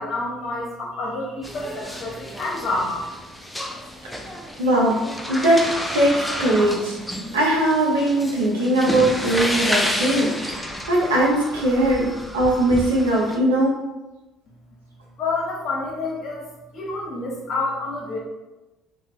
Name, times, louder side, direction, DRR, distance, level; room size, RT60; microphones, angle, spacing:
voice 1, 0.0-3.1 15.2-16.5 16.7-18.2, left 2 dB, 50° left, -2 dB, 0.9 m, -28 dB
sound 1, 1.4-13.4, equal, 5° left, 0.4 m, -30 dB
voice 2, 4.6-5.0 5.3-5.6 5.9-7.0 7.3-12.1 12.3-13.7, right 1 dB, 80° right, -3 dB, 0.6 m, -20 dB
2.6 x 2.1 x 3.1 m, 1.0 s
figure-of-eight pair, 55°, 0 cm